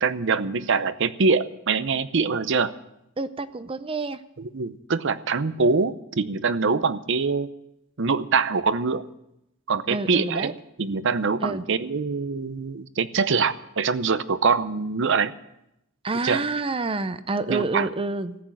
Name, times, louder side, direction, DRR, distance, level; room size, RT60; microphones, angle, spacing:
voice 1, 0.0-2.7 4.5-7.5 8.0-9.1 9.7-10.5 10.8-15.3 16.2-16.4 17.5-17.9, right 4 dB, 65° right, 14 dB, 0.7 m, -24 dB
voice 2, 3.2-4.2 9.9-10.5 11.4-11.6 16.0-18.4, right 3 dB, 25° right, 12 dB, 0.6 m, -28 dB
14.5 x 8.7 x 9.1 m, 0.85 s
head